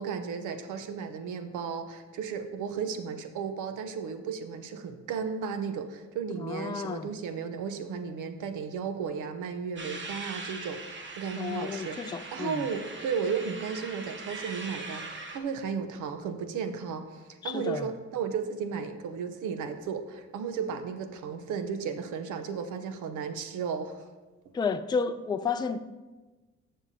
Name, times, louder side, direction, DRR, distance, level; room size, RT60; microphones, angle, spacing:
voice 1, 0.0-24.1, right 6 dB, 85° right, 0.8 m, -34 dB
voice 2, 6.4-7.1 11.4-12.7 17.4-17.9 24.5-25.8, left 5 dB, 15° left, 0.4 m, -31 dB
sound 1, 9.8-15.4, right 3 dB, 40° right, 1.1 m, -41 dB
14.5 x 5.6 x 2.7 m
cardioid pair, 90°, 30 cm